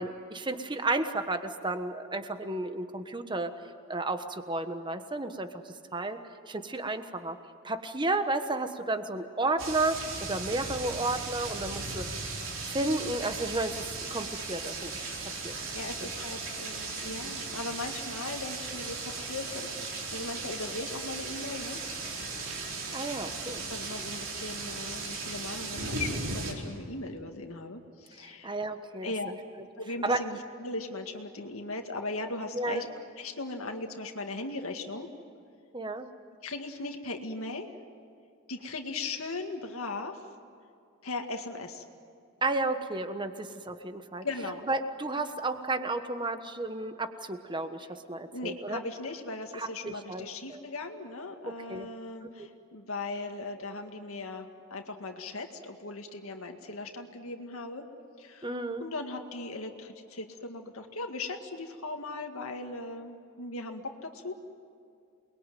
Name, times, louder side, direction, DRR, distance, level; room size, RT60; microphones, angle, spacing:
voice 1, 0.0-3.5 3.9-6.2 6.5-7.4 7.6-12.0 12.7-15.1 15.4-15.6 16.0-16.1 22.9-23.6 28.2-29.4 30.0-30.2 32.5-32.8 35.7-36.1 42.4-44.3 44.7-48.8 49.5-50.6 51.4-51.9 52.4-52.5 58.4-58.9, right 2 dB, 20° right, 8 dB, 1.3 m, -32 dB
sound 1, 9.6-26.5, right 3 dB, 60° right, 4.5 m, -37 dB
voice 2, 15.7-21.8 23.0-23.2 23.7-28.5 29.0-29.3 29.8-32.9 33.2-35.1 36.4-37.7 38.5-40.2 41.0-41.8 44.2-44.6 48.3-57.8 58.2-64.3, left 2 dB, 75° left, 4 dB, 2.0 m, -38 dB
29.0 x 21.5 x 9.3 m, 2.4 s
head